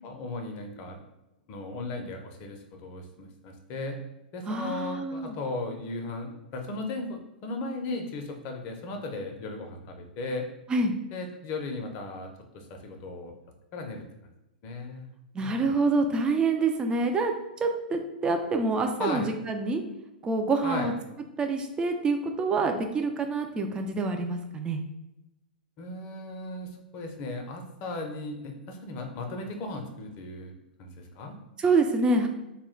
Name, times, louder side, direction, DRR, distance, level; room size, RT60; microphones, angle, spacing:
voice 1, 0.0-1.0 1.5-4.0 4.3-10.5 11.1-12.3 12.5-13.3 13.7-14.0 14.6-15.1 15.4-15.5 19.0-19.3 20.6-20.9 25.8-31.4, left 2 dB, 40° left, 3 dB, 0.5 m, -36 dB
voice 2, 4.5-5.4 10.7-10.9 15.3-17.3 17.6-19.8 20.2-20.9 21.4-24.8 31.6-32.3, right 3 dB, 15° right, 5 dB, 0.3 m, -26 dB
2.1 x 2.1 x 3.6 m, 0.95 s
hypercardioid pair, 110°, 5 cm